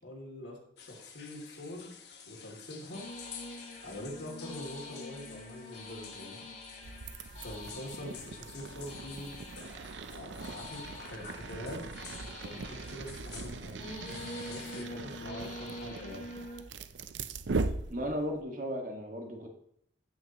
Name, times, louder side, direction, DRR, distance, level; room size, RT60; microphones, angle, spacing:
voice 1, 0.0-1.9 2.3-3.1 3.8-6.4 7.3-11.8 12.4-13.9 14.2-16.3, left 1 dB, 85° left, -1 dB, 2.8 m, -44 dB
sound 1, 0.8-14.8, left 7 dB, 65° left, 1.3 m, -52 dB
sound 2, 2.9-16.6, left 2 dB, 40° left, 2.5 m, -46 dB
sound 3, 6.8-18.4, right 3 dB, 80° right, 0.5 m, -40 dB
voice 2, 17.9-19.5, equal, 45° right, 2 dB, 1.8 m, -35 dB
15.5 x 6.5 x 3.0 m, 0.71 s
head